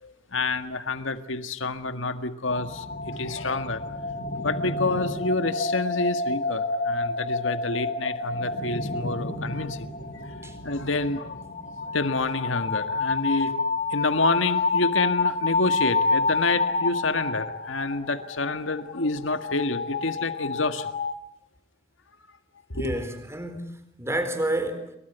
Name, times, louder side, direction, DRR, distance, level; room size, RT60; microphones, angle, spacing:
voice 1, 0.0-3.8 4.4-9.9 10.1-10.3 10.6-11.4 11.9-13.6 13.9-20.9 22.7-22.9, left 3 dB, 80° left, 1.9 m, -28 dB
sound 1, 2.5-21.1, left 3 dB, 45° left, 2.2 m, -29 dB
voice 2, 22.7-23.7 24.0-24.9, right 1 dB, 15° right, 4.2 m, -29 dB
29.5 x 23.5 x 8.2 m
head